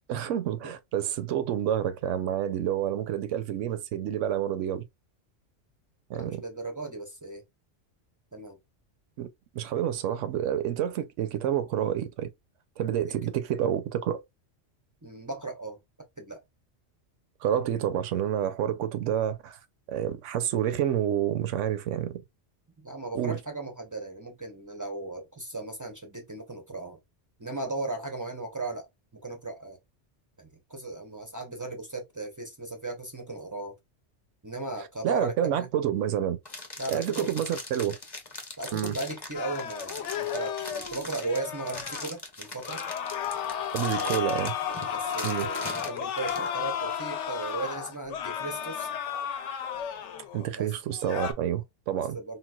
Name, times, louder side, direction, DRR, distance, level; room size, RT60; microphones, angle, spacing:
voice 1, 0.1-4.8 6.1-6.4 9.2-9.3 9.5-12.3 12.8-14.2 17.4-19.6 19.9-22.2 23.1-23.4 35.0-36.4 36.9-37.9 38.7-38.9 43.7-44.5 45.2-45.5 50.3-52.2, right 10 dB, 80° right, 0.9 m, -28 dB
voice 2, 6.2-7.4 8.3-8.6 13.1-13.2 15.0-15.8 16.2-16.4 22.8-27.0 27.4-29.8 30.4-33.7 34.4-35.7 36.8-37.3 38.6-42.8 44.0-44.1 44.6-48.9 50.6-50.7 52.1-52.4, right 2 dB, 30° right, 0.4 m, -36 dB
sound 1, 36.4-46.5, left 2 dB, 25° left, 0.7 m, -40 dB
sound 2, 39.3-42.1 42.6-50.5 50.9-51.3, left 8 dB, 75° left, 0.9 m, -33 dB
3.9 x 2.2 x 2.2 m
omnidirectional pair, 1.3 m